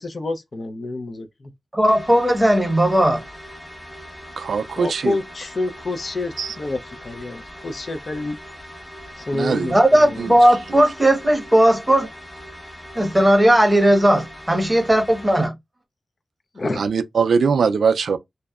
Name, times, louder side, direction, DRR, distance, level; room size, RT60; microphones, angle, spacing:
voice 1, 0.0-1.5 4.8-8.4 9.2-10.3 16.5-16.8, left 2 dB, 50° left, 0.5 m, -28 dB
voice 2, 1.7-3.2 9.7-12.1 12.9-15.5, right 1 dB, 10° right, 0.8 m, -16 dB
sound 1, 1.9-15.5, equal, 30° left, 1.1 m, -40 dB
voice 3, 4.4-5.2 6.4-6.5 9.3-9.7 10.2-10.3 10.7-10.8 16.7-18.2, right 5 dB, 85° right, 0.3 m, -21 dB
2.5 x 2.1 x 2.3 m
wide cardioid pair, 80°, 0 cm